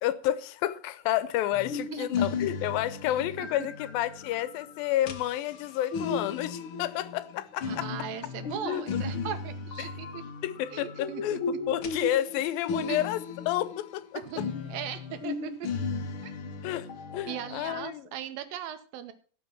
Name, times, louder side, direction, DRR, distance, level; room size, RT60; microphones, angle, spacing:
voice 1, 0.0-7.9 8.6-9.3 9.8-9.9 10.4-14.4 16.6-18.1, left 13 dB, 90° left, 16 dB, 2.6 m, -30 dB
sound 1, 1.5-14.0 14.3-17.9, left 5 dB, 65° left, 1.2 m, -36 dB
voice 2, 1.7-2.3 3.4-3.5 7.7-10.2 10.7-11.4 12.7-13.0 14.1-15.7 16.2-16.3 17.3-19.1, right 9 dB, 80° right, 10 dB, 2.9 m, -39 dB
16.5 x 6.3 x 5.9 m, 0.40 s
omnidirectional pair, 4.1 m